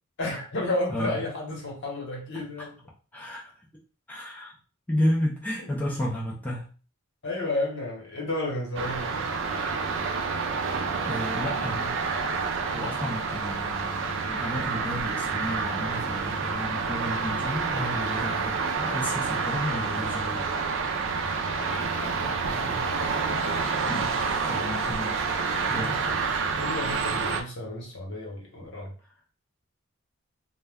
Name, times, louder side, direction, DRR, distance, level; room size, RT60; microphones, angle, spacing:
voice 1, 0.2-2.8 5.6-5.7 7.2-9.3 21.6-23.2 25.8-26.1 26.6-28.9, left 2 dB, 55° left, -1 dB, 1.0 m, -33 dB
voice 2, 0.9-1.2 2.6-2.7 3.1-3.5 4.1-4.5 4.9-6.7 11.1-11.9 12.7-20.5 23.9-24.2 24.5-26.2, left 1 dB, 10° left, -5 dB, 0.4 m, -32 dB
sound 1, 8.8-27.4, right 4 dB, 60° right, 0.4 m, -28 dB
2.2 x 2.1 x 3.4 m, 0.37 s
head